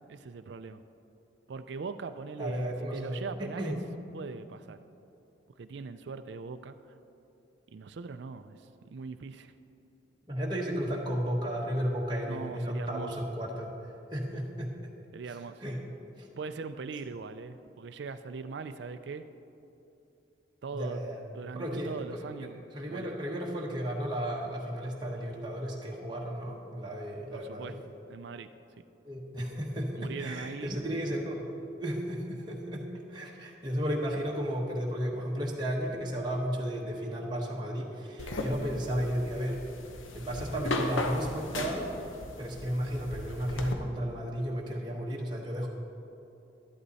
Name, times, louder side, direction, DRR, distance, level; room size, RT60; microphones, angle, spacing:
voice 1, 0.1-0.8 1.5-3.8 4.1-4.8 5.6-6.7 7.7-9.5 12.2-13.1 15.1-15.5 16.4-19.2 20.6-21.0 21.3-23.1 27.3-27.7 28.1-28.5 30.0-30.7, right 4 dB, 60° right, 9 dB, 0.4 m, -40 dB
voice 2, 2.4-3.2 3.6-3.7 10.3-13.7 14.1-14.7 15.3-15.8 16.2-16.3 17.1-17.2 20.7-21.2 21.5-27.8 29.0-31.5 31.8-39.6 40.1-41.9 42.4-45.7, equal, 25° right, -3 dB, 1.1 m, -34 dB
sound 1, 38.2-43.7, left 2 dB, 85° left, 1.0 m, -36 dB
12.0 x 11.5 x 4.1 m, 2.8 s
head